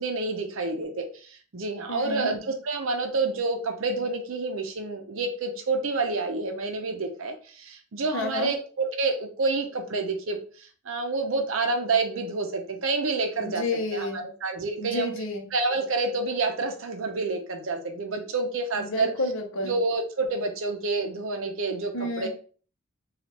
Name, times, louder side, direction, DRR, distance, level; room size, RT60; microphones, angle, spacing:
voice 1, 0.0-13.6 13.9-15.1 15.5-19.1 19.6-22.3, right 3 dB, 65° right, 4 dB, 0.6 m, -28 dB
voice 2, 1.9-2.3 8.1-8.5 13.4-14.3 14.8-15.5 18.7-19.8 21.9-22.3, left 2 dB, 60° left, 4 dB, 0.7 m, -30 dB
3.2 x 2.3 x 2.8 m, 0.41 s
head